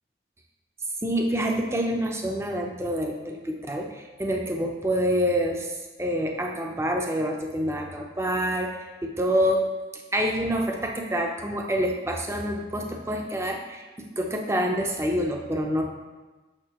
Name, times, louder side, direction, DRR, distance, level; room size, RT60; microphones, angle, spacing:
voice 1, 1.0-8.8 9.0-9.6 10.1-15.8, equal, 15° right, 2 dB, 0.6 m, -27 dB
6.5 x 6.4 x 3.0 m, 1.2 s
head